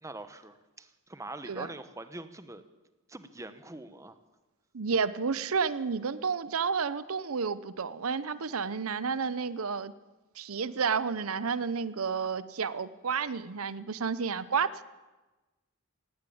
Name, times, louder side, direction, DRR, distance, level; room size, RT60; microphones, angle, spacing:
voice 1, 0.0-2.6 3.1-4.2, right 2 dB, 15° right, 11 dB, 1.1 m, -43 dB
voice 2, 4.7-9.9 10.4-14.8, right 5 dB, 80° right, 16 dB, 0.7 m, -31 dB
18.0 x 17.0 x 8.6 m, 1.2 s
head